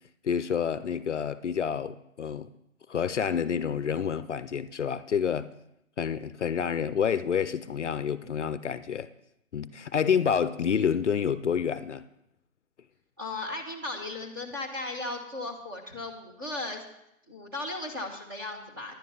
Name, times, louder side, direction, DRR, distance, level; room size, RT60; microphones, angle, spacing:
voice 1, 0.2-2.5 2.9-5.5 6.0-9.1 9.5-12.0, left 7 dB, 60° left, 0.6 m, -28 dB
voice 2, 13.2-16.8 17.3-18.9, left 2 dB, 15° right, 1.1 m, -36 dB
10.5 x 9.5 x 5.4 m
hypercardioid pair, 180°, 41 cm